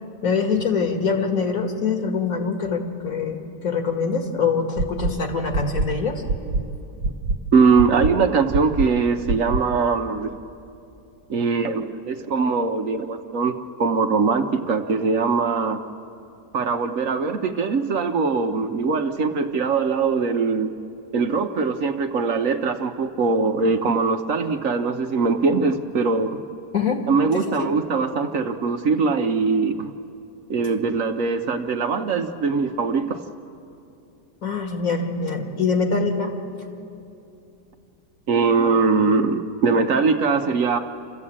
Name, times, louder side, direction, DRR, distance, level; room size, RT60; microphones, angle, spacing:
voice 1, 0.2-6.2 26.7-27.0 27.3-27.7 34.4-36.4, left 5 dB, 60° left, 4 dB, 2.3 m, -24 dB
sound 1, 4.8-5.1 5.5-5.9 6.3-6.6 7.0-7.4 7.8-8.1 8.5-8.9 9.3-9.6, right 3 dB, 80° right, 1.4 m, -23 dB
voice 2, 7.5-10.3 11.3-15.8 16.5-20.7 21.1-26.4 27.1-29.9 30.5-33.2 38.3-40.8, right 4 dB, 60° right, 7 dB, 1.1 m, -21 dB
28.0 x 14.0 x 8.6 m, 2.6 s
omnidirectional pair, 1.7 m